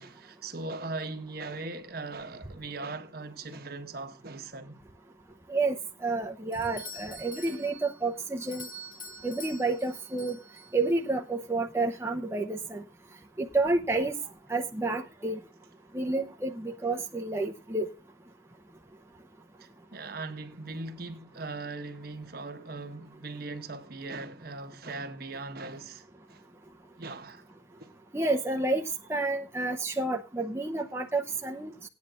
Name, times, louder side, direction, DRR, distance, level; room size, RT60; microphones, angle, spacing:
voice 1, 0.0-4.8 7.3-7.7 19.6-26.4 27.0-27.4 27.8-27.9, right 3 dB, 50° right, 1.3 m, -40 dB
voice 2, 5.5-8.7 9.2-10.4 10.7-12.8 13.4-14.2 14.5-15.4 15.9-17.9 28.1-28.8 29.1-31.7, right 2 dB, 15° right, 0.7 m, -30 dB
Doorbell, 6.5-11.0, left 1 dB, 25° left, 1.9 m, -46 dB
18.0 x 9.6 x 2.5 m
head